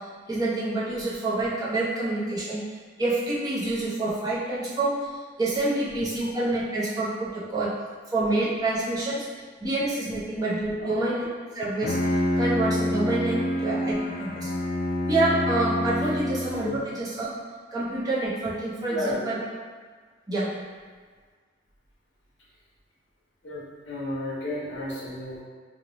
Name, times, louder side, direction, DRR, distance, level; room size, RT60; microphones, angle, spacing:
voice 1, 0.0-2.6 3.0-7.7 8.1-9.3 9.6-11.3 11.5-11.9 12.4-14.5 15.1-17.3 17.7-19.4 20.3-20.5, right 2 dB, 20° right, -8 dB, 0.6 m, -27 dB
Bowed string instrument, 11.6-16.7, left 1 dB, 50° left, 0.3 m, -27 dB
voice 2, 18.9-19.3 23.4-25.4, left 2 dB, 75° left, -8 dB, 0.9 m, -32 dB
3.0 x 2.2 x 3.8 m, 1.5 s
head